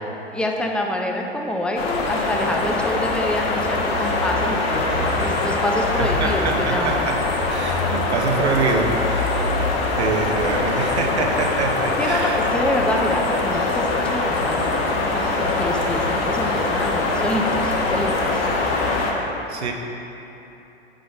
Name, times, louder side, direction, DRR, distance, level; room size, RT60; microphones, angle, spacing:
voice 1, 0.3-7.1 12.0-18.4, left 1 dB, 5° left, 1 dB, 0.4 m, -27 dB
sound 1, 1.8-19.1, left 3 dB, 60° left, 1.1 m, -23 dB
voice 2, 6.0-7.2 7.5-9.4 9.9-12.4 19.5-19.7, right 4 dB, 80° right, 2 dB, 0.8 m, -25 dB
7.6 x 5.1 x 3.9 m, 3.0 s
figure-of-eight pair, 90°, 33 cm